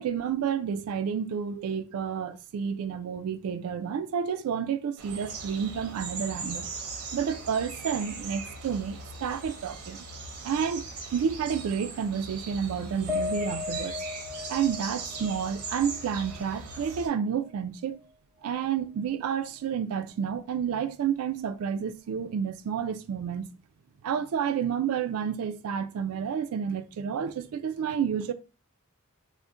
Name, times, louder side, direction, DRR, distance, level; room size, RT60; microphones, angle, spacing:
voice 1, 0.0-6.7 7.1-10.0 10.4-14.0 14.5-18.0 18.4-23.5 24.0-28.3, right 7 dB, 75° right, 0.3 m, -30 dB
sound 1, 5.0-17.1, right 3 dB, 90° right, 0.7 m, -39 dB
Piano, 13.1-17.6 17.9-18.1 18.5-18.6, left 4 dB, ahead, 0.6 m, -37 dB
2.5 x 2.1 x 3.5 m
head